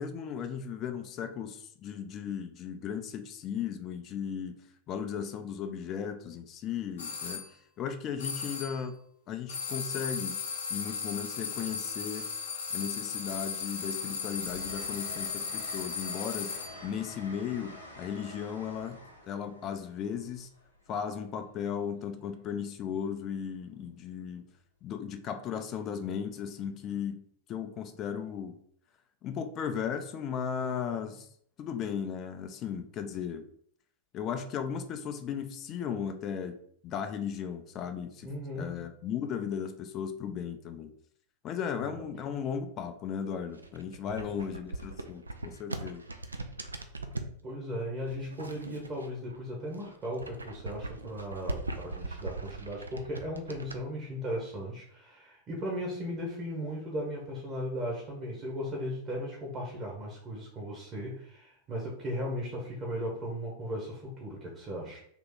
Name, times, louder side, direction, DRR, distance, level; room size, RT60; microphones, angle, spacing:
voice 1, 0.0-4.6 4.9-7.4 7.8-9.0 9.3-10.4 10.7-12.3 12.7-16.5 16.8-19.0 19.2-20.5 20.9-24.5 24.8-27.2 27.5-28.6 29.2-31.3 31.6-33.5 34.1-36.5 36.8-38.3 38.5-40.9 41.4-46.0, left 7 dB, 35° left, 8 dB, 0.4 m, -36 dB
sound 1, 7.0-7.5 8.2-8.8 9.5-16.9, left 6 dB, 60° left, 0.8 m, -36 dB
Train, 12.6-21.4 23.0-23.2, left 1 dB, 90° left, 0.7 m, -49 dB
voice 2, 30.6-31.0 38.2-38.8 41.9-42.1 44.0-44.1 47.4-65.0, equal, 30° right, -2 dB, 1.0 m, -37 dB
sound 2, 43.5-47.4 48.1-49.4 49.7-53.8, right 2 dB, 80° right, 0.3 m, -40 dB
2.9 x 2.9 x 3.8 m, 0.64 s
figure-of-eight pair, 90°, 0 cm